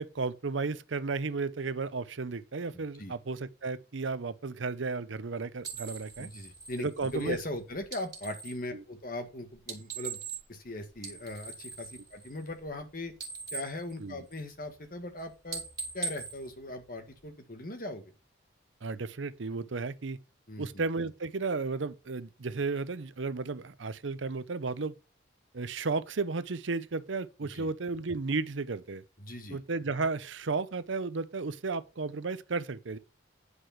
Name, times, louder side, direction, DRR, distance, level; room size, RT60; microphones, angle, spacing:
voice 1, 0.0-6.3 6.8-7.4 8.7-8.8 14.0-14.2 18.8-20.2 20.6-24.9 25.5-29.0 29.5-33.0, right 4 dB, 85° right, 0.7 m, -33 dB
voice 2, 2.7-3.1 6.2-10.2 10.5-13.1 13.5-15.6 15.9-18.1 20.5-20.8 27.5-27.7 29.2-29.6, left 1 dB, 45° left, 1.7 m, -39 dB
sound 1, 5.6-8.6 9.6-10.7 10.9-12.8 13.1-14.6 15.0-15.2 15.5-17.3, right 5 dB, 20° right, 2.9 m, -41 dB
9.9 x 4.9 x 5.8 m
head